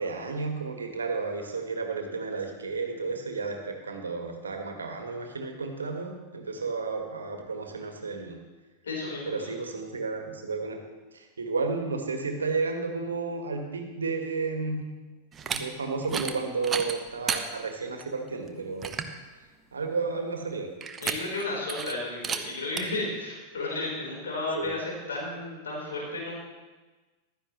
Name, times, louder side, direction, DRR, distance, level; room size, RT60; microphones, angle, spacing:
voice 1, 0.0-8.4 9.2-10.8 11.1-14.8 15.4-19.0 19.7-20.7 24.5-24.7, right 4 dB, 75° right, 4 dB, 1.7 m, -32 dB
voice 2, 8.8-9.6 21.0-26.3, left 2 dB, 70° left, -3 dB, 4.3 m, -33 dB
sound 1, 15.3-15.6 16.0-16.3 16.6-17.4 18.0-18.1 18.5-18.6 18.8-19.1 20.8-21.4 21.7-21.9 22.2-22.4 22.8-22.9, right 6 dB, 25° right, 1.0 m, -31 dB
15.0 x 12.5 x 3.2 m, 1.2 s
figure-of-eight pair, 90°, 0 cm